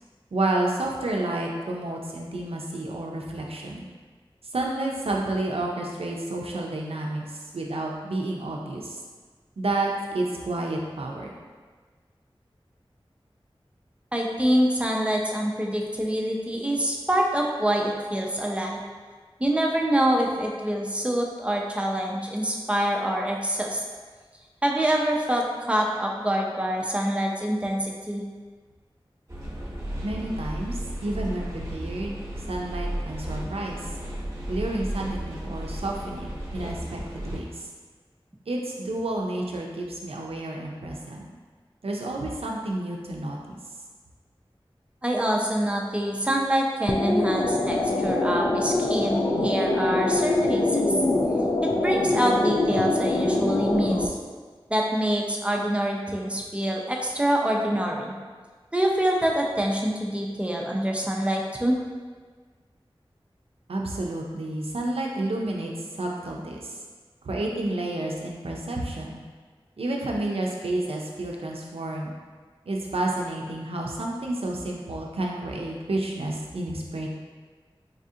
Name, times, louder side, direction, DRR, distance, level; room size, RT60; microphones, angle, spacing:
voice 1, 0.3-3.9 4.5-9.0 9.6-11.3 30.0-32.2 32.5-33.9 34.5-37.7 38.5-41.3 41.8-43.6 63.7-66.8 67.2-69.2 69.8-72.1 72.7-77.1, right 2 dB, 90° right, -1 dB, 0.5 m, -30 dB
voice 2, 14.1-18.8 19.4-23.8 24.6-28.2 45.0-50.8 51.6-54.2 54.7-58.1 58.7-61.8, right 1 dB, 10° right, -1 dB, 0.5 m, -25 dB
sound 1, 29.3-37.4, right 1 dB, 30° right, 0.9 m, -34 dB
sound 2, 46.9-54.1, left 2 dB, 50° left, 0.4 m, -24 dB
4.2 x 2.4 x 2.7 m, 1.5 s
wide cardioid pair, 50°, 10 cm